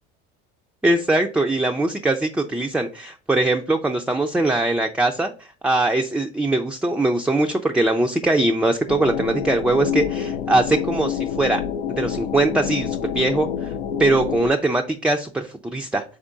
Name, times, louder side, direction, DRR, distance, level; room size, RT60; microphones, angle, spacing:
voice 1, 0.8-5.3 5.6-11.6 11.9-13.7 14.0-16.0, right 2 dB, 5° right, 4 dB, 0.3 m, -21 dB
sound 1, 8.9-14.5, left 8 dB, 80° left, 0.6 m, -27 dB
3.6 x 3.6 x 3.8 m, 0.36 s
hypercardioid pair, 75°, 32 cm